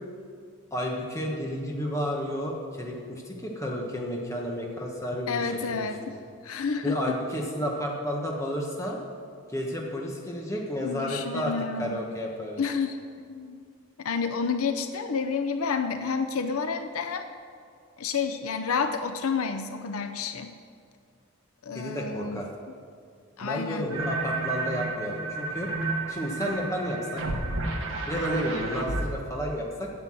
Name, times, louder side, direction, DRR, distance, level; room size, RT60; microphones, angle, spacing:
voice 1, 0.7-6.2 6.8-9.0 9.5-11.5 11.8-12.6 21.7-22.5 23.4-25.7 26.1-27.2 28.1-29.9, equal, 15° left, -1 dB, 1.3 m, -31 dB
voice 2, 5.3-7.2 10.8-12.0 12.6-13.0 13.3-13.6 14.0-17.3 18.0-20.5 21.6-22.4 23.4-23.9, left 5 dB, 80° left, 8 dB, 0.6 m, -30 dB
sound 1, 23.9-29.1, right 3 dB, 60° right, 1.4 m, -31 dB
9.7 x 6.9 x 7.7 m, 2.3 s
head